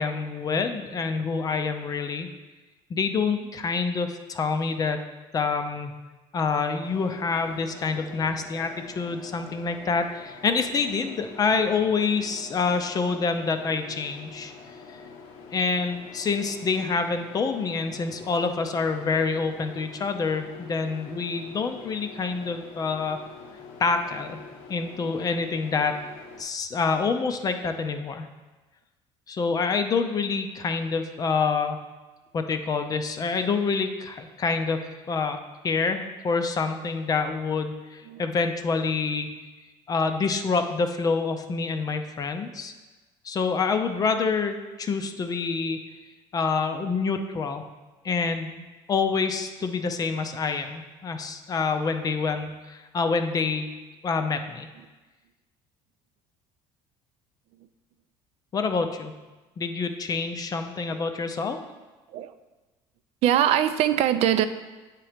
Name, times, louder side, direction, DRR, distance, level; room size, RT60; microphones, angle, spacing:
voice 1, 0.0-2.3 2.9-5.0 5.3-5.9 6.3-14.5 14.9-15.0 15.5-23.2 23.8-24.4 24.7-26.0 26.4-28.3 29.3-31.8 32.3-34.8 35.1-35.4 35.6-39.4 39.9-42.7 43.2-45.8 46.3-47.7 48.0-53.7 54.0-54.7 58.5-59.1 59.6-61.6, left 4 dB, 30° left, 7 dB, 0.5 m, -27 dB
sound 1, 6.8-26.4, left 4 dB, 75° left, 0.9 m, -46 dB
voice 2, 63.2-64.5, right 11 dB, 60° right, 11 dB, 0.4 m, -22 dB
8.4 x 3.0 x 5.0 m, 1.2 s
supercardioid pair, 105°, 12 cm